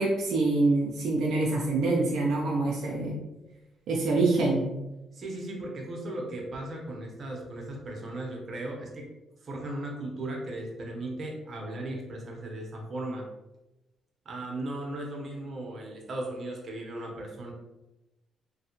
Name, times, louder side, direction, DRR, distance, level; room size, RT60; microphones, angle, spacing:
voice 1, 0.0-3.2 3.9-4.7, right 2 dB, 75° right, -2 dB, 0.4 m, -25 dB
voice 2, 5.1-9.1 9.4-13.2 14.2-17.5, right 1 dB, 45° right, 0 dB, 0.8 m, -37 dB
3.2 x 2.3 x 2.9 m, 1.0 s
cardioid pair, 90°, 0 cm